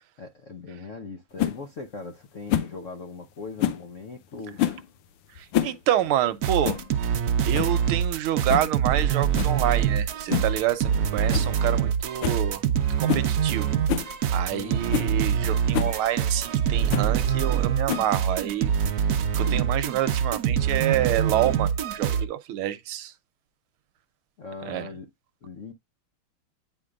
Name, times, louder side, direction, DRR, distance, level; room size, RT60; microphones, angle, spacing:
voice 1, 0.2-4.6 14.5-15.1 24.4-25.1 25.4-25.7, left 4 dB, 60° left, 0.8 m, -39 dB
sound 1, 1.4-1.6 2.5-2.8 3.6-3.9 4.6-4.9 5.4-5.8 6.1-6.2 6.6-6.9 7.2-7.3 7.5-7.8 8.5-8.7 9.3-9.6 10.3-10.6 10.9-11.0 11.3-11.5 11.8-11.9 12.2-12.4 13.1-13.3 13.9-14.1 14.6-14.7 14.9-15.1 15.7-16.0 16.9-17.1 17.9-18.2, left 11 dB, 85° left, 1.7 m, -27 dB
voice 2, 5.4-6.8 7.4-13.8 14.3-19.1 19.4-23.1 24.6-24.9, right 12 dB, 80° right, 1.6 m, -28 dB
sound 2, 6.4-22.3, right 8 dB, 65° right, 1.0 m, -25 dB
sound 3, 11.1-11.7 12.5-13.5 14.0-15.0 15.8-18.6, equal, 5° right, 2.0 m, -51 dB
9.2 x 4.6 x 2.4 m
omnidirectional pair, 2.4 m